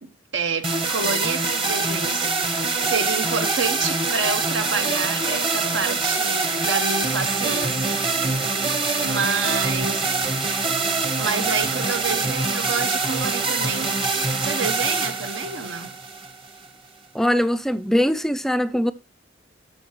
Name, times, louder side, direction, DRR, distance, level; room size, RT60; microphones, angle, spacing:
voice 1, 0.0-2.3 2.8-8.0 9.0-10.2 11.2-13.9 14.4-16.0, right 5 dB, 75° right, 0.9 m, -28 dB
sound 1, 0.6-16.7, right 3 dB, 30° right, 1.0 m, -24 dB
voice 2, 17.1-18.9, equal, ahead, 0.3 m, -21 dB
13.0 x 4.6 x 3.0 m
head